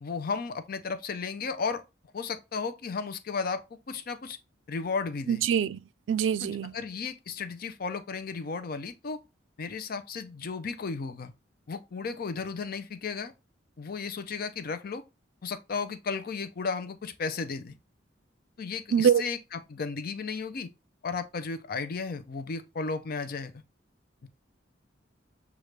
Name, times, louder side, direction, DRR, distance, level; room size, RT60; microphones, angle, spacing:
voice 1, 0.0-1.8 2.1-4.4 4.7-5.4 6.4-9.2 9.6-11.3 11.7-13.3 13.8-15.0 15.4-17.8 18.6-20.7 21.0-23.6 24.2-24.3, left 5 dB, 55° left, 0.5 m, -34 dB
voice 2, 5.3-5.8 6.1-6.7 18.9-19.2, right 8 dB, 85° right, 0.3 m, -24 dB
6.5 x 2.4 x 3.2 m
head